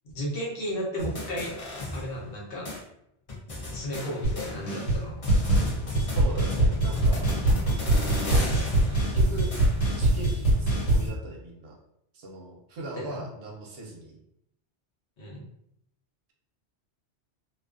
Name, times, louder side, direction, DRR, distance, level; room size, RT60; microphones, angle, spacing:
voice 1, 0.1-1.5 1.9-2.7 3.7-5.2 12.9-13.2 15.2-15.4, equal, 55° left, -4 dB, 0.9 m, -34 dB
sound 1, 1.0-2.4 2.6-2.8 3.3-4.9 5.2-10.0, left 2 dB, 40° left, 0.5 m, -36 dB
sound 2, 4.2-4.4 4.7-5.0 5.3-11.1, right 1 dB, 80° left, 1.3 m, -23 dB
voice 2, 6.2-7.2 8.8-9.5 9.9-11.7 12.1-14.2, right 2 dB, 65° right, -1 dB, 0.7 m, -39 dB
2.3 x 2.3 x 2.3 m, 0.76 s
omnidirectional pair, 1.2 m